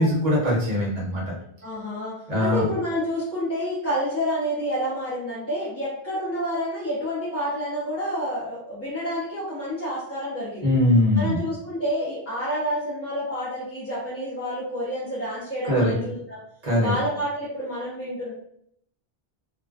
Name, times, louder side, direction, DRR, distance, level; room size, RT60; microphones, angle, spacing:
voice 1, 0.0-1.3 2.3-2.7 10.6-11.4 15.6-15.9 16.6-16.9, left 1 dB, 40° right, -4 dB, 1.0 m, -21 dB
voice 2, 1.6-10.7 11.1-16.4 16.8-18.3, equal, 20° left, -10 dB, 0.5 m, -29 dB
2.4 x 2.1 x 2.4 m, 0.69 s
omnidirectional pair, 1.1 m